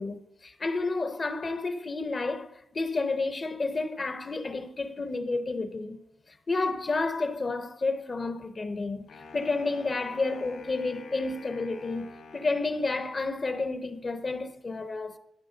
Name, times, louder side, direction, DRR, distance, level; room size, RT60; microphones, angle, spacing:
voice 1, 0.0-6.0 6.3-12.1 12.3-15.2, left 3 dB, 40° left, 0.7 m, -31 dB
Wind instrument woodwind instrument, 9.1-13.3, left 3 dB, 80° left, 1.9 m, -48 dB
11.0 x 6.2 x 3.9 m
cardioid pair, 70°, 0 cm